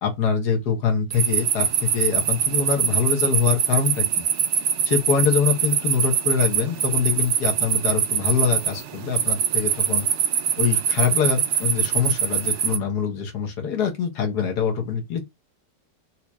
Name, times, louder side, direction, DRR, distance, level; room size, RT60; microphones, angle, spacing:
voice 1, 0.0-4.2 4.9-10.1 10.6-15.2, left 7 dB, 65° left, 1.7 m, -24 dB
sound 1, 1.1-12.8, right 9 dB, 70° right, 0.7 m, -23 dB
4.4 x 2.8 x 2.3 m
omnidirectional pair, 1.9 m